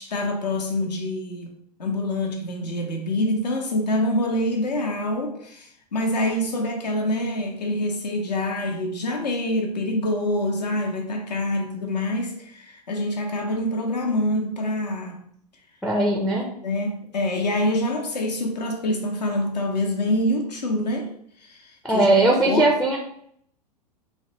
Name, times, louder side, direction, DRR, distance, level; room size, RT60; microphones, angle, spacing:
voice 1, 0.0-1.5 1.8-15.3 16.6-21.1 21.5-22.1 22.5-22.7, left 1 dB, 80° left, 0.7 m, -26 dB
voice 2, 15.8-16.5 21.8-23.0, right 2 dB, ahead, 0.4 m, -19 dB
3.2 x 2.1 x 2.7 m
figure-of-eight pair, 90°, 21 cm